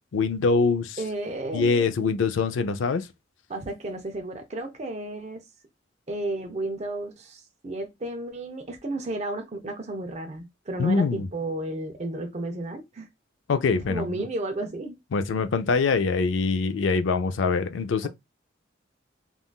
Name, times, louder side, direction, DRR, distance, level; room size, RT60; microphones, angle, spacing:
voice 1, 0.1-1.0 1.5-3.1 10.8-11.3 13.5-14.3 15.1-18.1, left 4 dB, 75° left, 0.4 m, -24 dB
voice 2, 1.0-1.9 3.5-5.4 6.1-13.1 13.8-15.0 18.0-18.1, right 2 dB, 35° right, 0.5 m, -33 dB
3.6 x 2.4 x 2.2 m
head